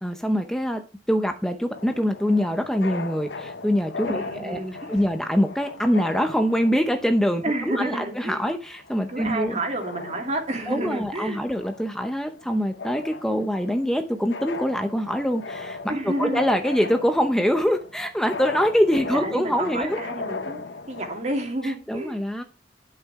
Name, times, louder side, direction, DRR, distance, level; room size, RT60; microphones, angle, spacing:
voice 1, 0.0-4.6 4.9-9.6 10.7-20.0 21.6-22.4, equal, 5° left, 6 dB, 0.7 m, -24 dB
sound 1, 1.7-21.2, left 3 dB, 75° left, 0.9 m, -38 dB
voice 2, 4.1-4.9 7.4-8.4 9.1-11.4 15.9-16.4 19.1-20.6 20.9-22.2, right 1 dB, 40° right, 3 dB, 2.8 m, -30 dB
11.5 x 6.5 x 3.6 m, 0.33 s
head